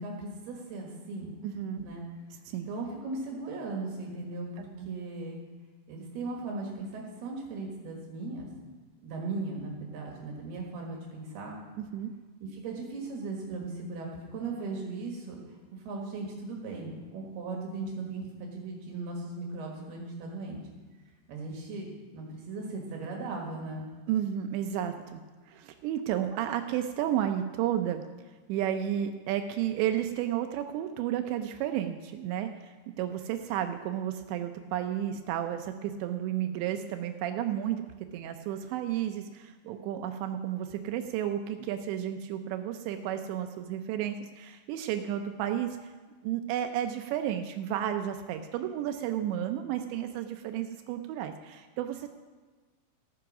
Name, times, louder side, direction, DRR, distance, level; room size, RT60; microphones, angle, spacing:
voice 1, 0.0-1.3 1.8-2.0 2.7-5.4 5.9-8.5 9.0-11.6 12.4-20.6 21.3-21.9 22.1-23.9, right 3 dB, 65° right, 0 dB, 3.3 m, -38 dB
voice 2, 1.4-1.8 2.5-2.7 4.8-4.9 11.8-12.1 24.1-28.0 28.5-37.8 38.1-45.9 46.2-52.1, right 10 dB, 80° right, 7 dB, 2.7 m, -32 dB
15.0 x 9.4 x 6.1 m, 1.4 s
omnidirectional pair, 5.5 m